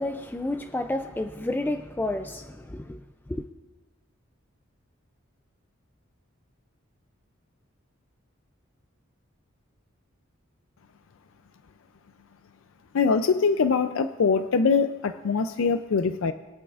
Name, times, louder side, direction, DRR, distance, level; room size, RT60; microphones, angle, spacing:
voice 1, 0.0-3.0 3.3-3.4, left 1 dB, 10° left, 0.3 m, -30 dB
voice 2, 12.9-16.3, left 5 dB, 75° left, 0.4 m, -23 dB
22.0 x 8.5 x 2.4 m
head